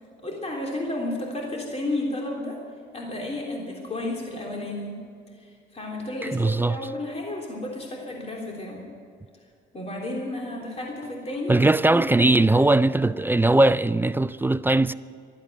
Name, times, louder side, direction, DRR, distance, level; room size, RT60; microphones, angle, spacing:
voice 1, 0.2-2.6 2.9-5.0 5.3-8.8 9.7-12.6, left 1 dB, 30° left, 3.4 m, -32 dB
voice 2, 6.3-6.8 11.5-14.9, right 2 dB, 10° right, 0.4 m, -20 dB
13.0 x 12.0 x 9.3 m
cardioid pair, 90°, 20 cm